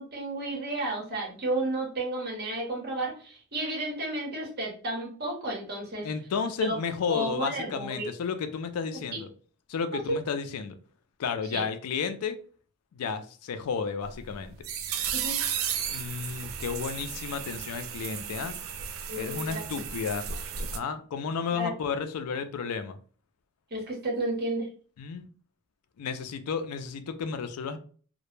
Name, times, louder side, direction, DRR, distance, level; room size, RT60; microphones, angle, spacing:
voice 1, 0.0-6.1 6.6-6.8 7.1-8.1 9.9-10.2 11.5-11.6 15.1-15.4 19.1-19.8 21.6-21.7 23.7-24.7, right 1 dB, 45° right, -1 dB, 0.9 m, -32 dB
voice 2, 6.0-9.3 9.7-10.7 11.2-12.4 12.9-14.6 15.9-18.6 19.2-20.3 20.7-23.0 25.0-25.3 26.0-27.8, left 6 dB, 85° left, 9 dB, 0.4 m, -32 dB
sound 1, 14.1-20.8, right 8 dB, 65° right, 0.3 m, -34 dB
2.1 x 2.0 x 3.1 m, 0.42 s
head